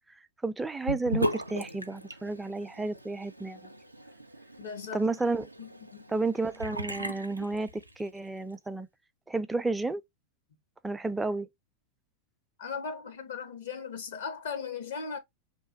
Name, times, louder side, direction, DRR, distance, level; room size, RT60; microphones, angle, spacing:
voice 1, 0.4-3.6 4.9-5.5 6.1-8.9 9.3-10.0 10.8-11.5, right 3 dB, 10° right, 0.3 m, -31 dB
Sink (filling or washing) / Bathtub (filling or washing), 0.9-8.2, equal, 85° right, 0.3 m, -37 dB
voice 2, 4.6-5.1 5.6-6.1 12.6-15.2, left 6 dB, 60° left, 0.6 m, -38 dB
2.9 x 2.1 x 2.5 m
figure-of-eight pair, 90°, 0 cm